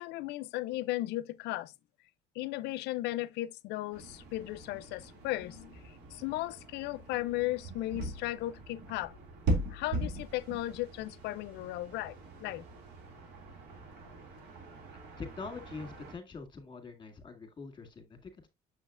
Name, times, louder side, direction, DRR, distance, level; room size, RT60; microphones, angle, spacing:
voice 1, 0.0-1.7 2.4-9.1 9.7-12.6, left 16 dB, 85° left, 0.5 m, -36 dB
sound 1, 3.9-16.2, right 1 dB, 90° right, 2.2 m, -40 dB
voice 2, 15.2-18.5, left 4 dB, 30° left, 1.8 m, -44 dB
6.7 x 6.2 x 2.4 m
cardioid pair, 110°, 17 cm